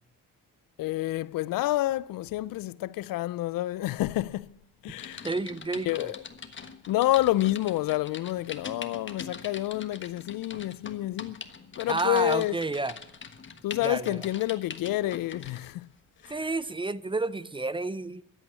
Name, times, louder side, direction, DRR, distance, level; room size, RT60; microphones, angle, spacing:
voice 1, 0.8-4.5 4.8-5.3 5.9-6.2 6.9-11.4 11.8-12.5 13.6-15.9 16.2-16.3, left 16 dB, 75° left, 0.5 m, -28 dB
Typing, 5.0-15.7 16.2-16.4, left 5 dB, 35° left, 1.4 m, -43 dB
voice 2, 5.2-6.2 11.9-13.0 13.8-14.3 16.3-18.2, right 3 dB, 15° right, 0.5 m, -30 dB
14.0 x 9.2 x 9.7 m
cardioid pair, 95°, 35 cm